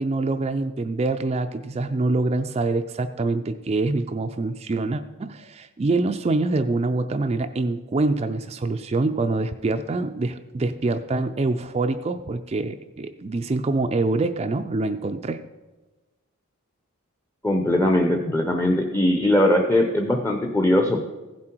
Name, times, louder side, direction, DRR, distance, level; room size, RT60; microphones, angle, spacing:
voice 1, 0.0-15.4, right 3 dB, 30° right, 8 dB, 0.4 m, -25 dB
voice 2, 17.4-21.0, left 1 dB, 10° left, 3 dB, 0.6 m, -20 dB
15.5 x 7.5 x 4.5 m, 1.2 s
head